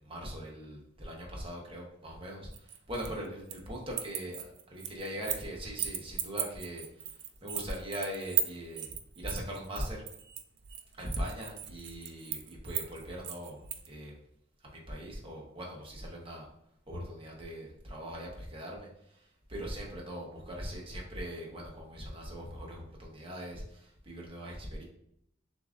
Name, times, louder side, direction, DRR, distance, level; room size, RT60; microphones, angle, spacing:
voice 1, 0.0-10.0 11.0-13.6 13.9-14.2 14.6-16.5 16.9-24.8, equal, 25° right, -2 dB, 1.0 m, -41 dB
sound 1, 2.5-3.7 3.9-5.5 5.8-13.9, right 10 dB, 60° right, 0.4 m, -36 dB
6.7 x 2.7 x 2.5 m, 0.74 s
head